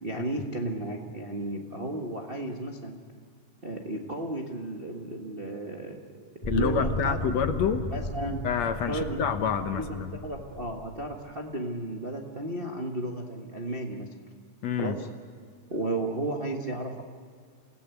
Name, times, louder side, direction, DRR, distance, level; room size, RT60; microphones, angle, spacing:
voice 1, 0.0-3.0 3.6-7.2 7.9-8.4 8.9-14.1 14.8-15.1 15.7-17.0, right 2 dB, 60° right, 1 dB, 0.5 m, -34 dB
sound 1, 6.4-11.3, equal, 15° left, 1.9 m, -35 dB
voice 2, 6.5-7.8 8.4-10.2 14.6-15.0, left 7 dB, 65° left, 7 dB, 2.0 m, -28 dB
28.5 x 18.0 x 8.3 m, 2.1 s
omnidirectional pair, 3.8 m